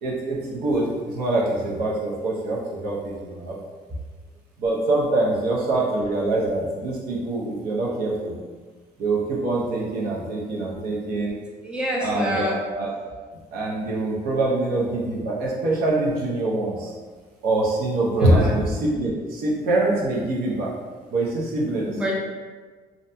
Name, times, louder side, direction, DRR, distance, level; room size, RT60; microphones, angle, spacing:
voice 1, 0.0-3.6 4.6-8.4 9.0-11.3 12.0-12.9 13.5-16.9 17.4-20.7 21.1-22.0, right 2 dB, 80° right, -4 dB, 0.7 m, -24 dB
voice 2, 11.6-12.6 18.2-18.6 21.9-22.1, equal, 5° right, -3 dB, 0.4 m, -27 dB
2.6 x 2.2 x 2.6 m, 1.5 s
cardioid pair, 130°, 15 cm